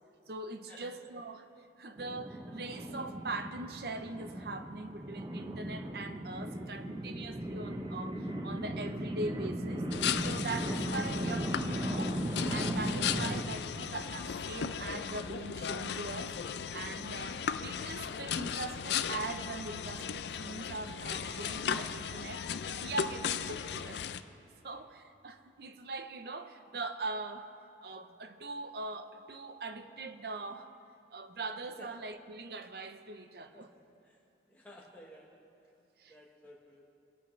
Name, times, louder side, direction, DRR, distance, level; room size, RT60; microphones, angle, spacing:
voice 1, 0.3-1.5 1.8-9.8 10.2-12.2 12.5-22.5 22.8-24.1 24.6-27.5 27.8-30.7 31.1-33.7 36.0-36.1, right 3 dB, 60° right, 8 dB, 0.7 m, -41 dB
sound 1, 2.0-13.4, right 1 dB, 25° right, 0.7 m, -37 dB
sound 2, 9.9-24.2, left 7 dB, 75° left, 0.4 m, -36 dB
voice 2, 34.5-35.4 36.1-36.9, equal, 10° left, -4 dB, 1.2 m, -54 dB
23.0 x 9.0 x 3.2 m, 2.7 s
head